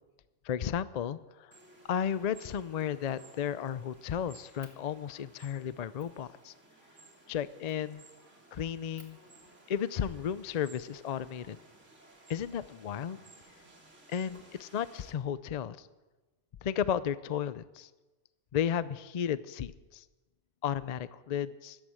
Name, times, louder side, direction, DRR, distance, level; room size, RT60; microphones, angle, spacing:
voice 1, 0.4-1.5 1.9-6.5 7.3-8.0 8.5-9.2 9.7-11.6 12.3-13.2 14.1-15.9 16.6-17.9 18.5-20.0 20.6-21.8, left 8 dB, 50° left, 16 dB, 0.5 m, -34 dB
sound 1, 1.5-15.1, right 2 dB, 80° right, 2.7 m, -58 dB
Fire, 2.4-2.7 3.1-4.0 4.6-4.8 5.4-5.5 6.0-6.2 7.7-7.9 8.4-8.5 8.9-10.7 11.8-12.7, right 2 dB, 55° right, 2.6 m, -61 dB
14.5 x 11.5 x 7.6 m, 1.2 s
omnidirectional pair, 1.2 m